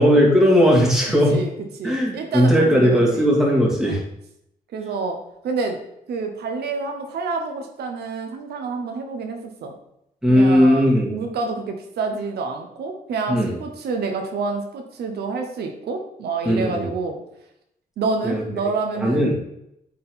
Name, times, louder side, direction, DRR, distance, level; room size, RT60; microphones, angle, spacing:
voice 1, 0.0-1.4 1.8-4.0 10.2-11.1 13.3-13.5 16.5-16.9 18.2-18.4 19.0-19.4, equal, 5° right, -4 dB, 2.3 m, -17 dB
voice 2, 1.8-3.3 3.8-4.0 4.7-5.2 5.4-5.8 6.1-9.7 10.3-17.2 18.0-19.4, right 4 dB, 90° right, 4 dB, 1.0 m, -28 dB
8.4 x 4.4 x 3.7 m, 0.79 s
cardioid pair, 105°, 16 cm